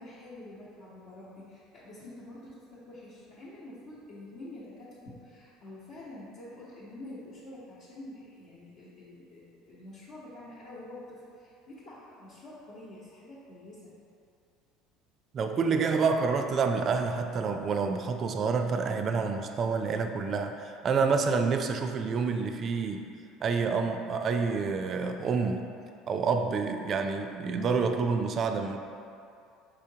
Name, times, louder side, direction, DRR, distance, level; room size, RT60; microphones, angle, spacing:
voice 1, 0.0-13.9, left 1 dB, 65° left, -11 dB, 1.0 m, -47 dB
voice 2, 15.3-23.1 23.4-25.6 26.1-28.8, right 5 dB, 40° right, 6 dB, 0.3 m, -28 dB
4.9 x 3.6 x 2.8 m, 2.5 s
supercardioid pair, 95°, 0 cm